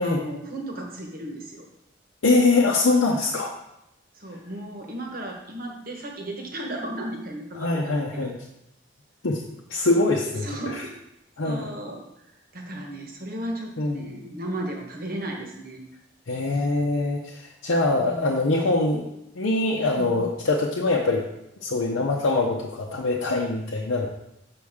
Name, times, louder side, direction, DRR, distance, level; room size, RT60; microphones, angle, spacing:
voice 1, 0.0-1.7 4.1-8.3 10.4-10.9 11.4-12.3 12.5-15.8 16.5-16.7 17.9-18.3 20.0-20.3, right 1 dB, 45° right, 1 dB, 1.1 m, -35 dB
voice 2, 2.2-3.5 7.5-8.4 9.2-9.4 9.7-10.5 10.7-10.8 11.4-11.7 13.8-14.1 16.3-19.0 19.3-21.2 21.6-24.1, left 2 dB, 75° left, -2 dB, 0.7 m, -23 dB
6.3 x 5.3 x 3.6 m, 0.84 s
head